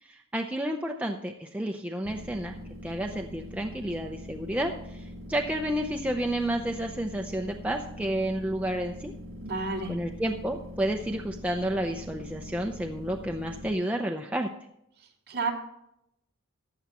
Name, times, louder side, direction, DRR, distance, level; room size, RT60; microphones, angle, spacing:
voice 1, 0.0-9.1 9.9-14.5, right 1 dB, 5° right, 2 dB, 0.6 m, -31 dB
sound 1, 2.0-13.7, left 1 dB, 70° right, 2.4 m, -43 dB
voice 2, 9.4-10.0 15.3-15.5, right 3 dB, 45° right, 0 dB, 2.6 m, -30 dB
15.5 x 11.0 x 3.0 m, 0.79 s
head